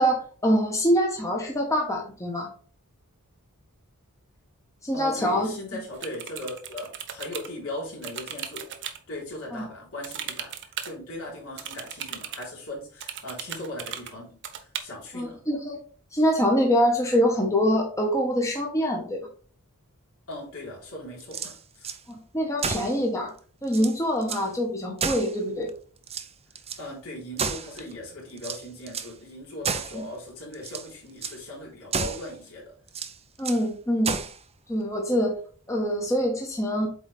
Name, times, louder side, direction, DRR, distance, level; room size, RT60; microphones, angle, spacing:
voice 1, 0.0-2.5 4.8-5.5 9.5-9.6 15.1-15.8 16.1-19.2 22.1-23.3 23.6-25.7 29.9-30.0 33.4-34.1 34.7-35.3 35.7-36.9, equal, 15° left, 0 dB, 1.2 m, -24 dB
voice 2, 4.9-15.4 20.3-22.0 26.8-32.7, left 1 dB, 70° left, -3 dB, 3.4 m, -39 dB
sound 1, 5.9-7.5 8.0-9.0 10.0-10.9 11.6-12.5 13.0-14.1 14.4-14.8, right 9 dB, 55° right, 0.8 m, -36 dB
sound 2, 21.2-22.0 22.6-23.0 23.4-23.5 23.7-24.5 25.0-25.7 26.0-26.8 27.4-27.9 28.4-29.2 29.6-30.0 30.5-30.9 31.2-31.4 31.9-32.3 32.9-33.7 34.0-34.4, right 5 dB, 25° right, 0.6 m, -31 dB
8.0 x 4.0 x 3.3 m, 0.43 s
head